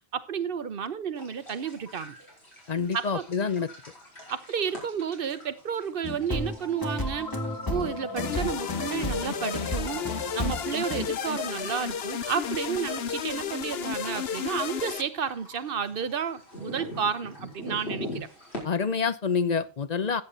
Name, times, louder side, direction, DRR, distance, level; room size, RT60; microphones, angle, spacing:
voice 1, 0.0-2.1 2.9-3.2 4.3-7.3 7.7-18.3, right 7 dB, 60° right, 1.1 m, -31 dB
sound 1, 1.2-18.6, left 1 dB, 90° left, 5.1 m, -45 dB
voice 2, 2.7-3.7 18.6-20.2, left 5 dB, 45° left, 0.7 m, -27 dB
sound 2, 6.0-11.1, left 1 dB, 20° left, 1.9 m, -33 dB
sound 3, 8.2-15.0, left 7 dB, 70° left, 1.1 m, -33 dB
14.5 x 8.4 x 4.0 m
omnidirectional pair, 1.1 m